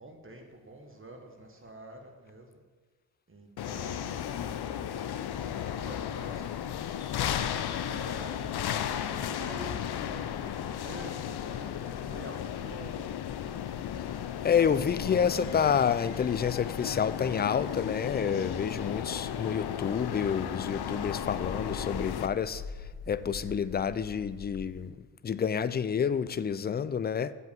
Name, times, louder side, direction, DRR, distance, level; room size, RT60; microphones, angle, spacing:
voice 1, 0.0-2.6 3.3-4.7 5.2-6.8 7.8-8.5 9.0-13.1, right 1 dB, 30° right, 1.7 m, -48 dB
sound 1, 3.6-22.3, left 9 dB, 60° left, 0.7 m, -35 dB
Bird, 6.9-24.9, left 4 dB, 90° left, 2.4 m, -48 dB
voice 2, 14.4-22.6 23.1-24.9 25.2-27.3, left 7 dB, 25° left, 0.4 m, -29 dB
7.6 x 5.6 x 7.2 m
supercardioid pair, 55°, 44 cm